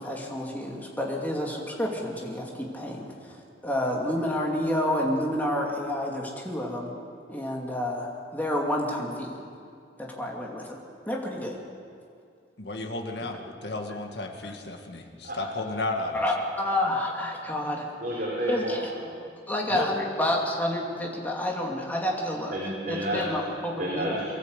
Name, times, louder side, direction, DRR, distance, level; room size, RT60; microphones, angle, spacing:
voice 1, 0.0-3.1 3.6-6.9 7.3-9.3 10.0-10.8 11.1-11.6 14.4-14.5 16.1-17.9 18.5-18.8 19.5-22.5 22.9-24.2, left 1 dB, 10° left, -2 dB, 2.8 m, -29 dB
voice 2, 12.6-16.2 19.7-19.9 23.1-23.3, left 2 dB, 65° left, 3 dB, 2.0 m, -33 dB
voice 3, 15.2-15.6 16.3-16.4 18.0-19.1 22.5-23.4 23.8-24.2, right 1 dB, 55° right, -6 dB, 4.2 m, -31 dB
23.5 x 13.5 x 8.2 m, 2.3 s
head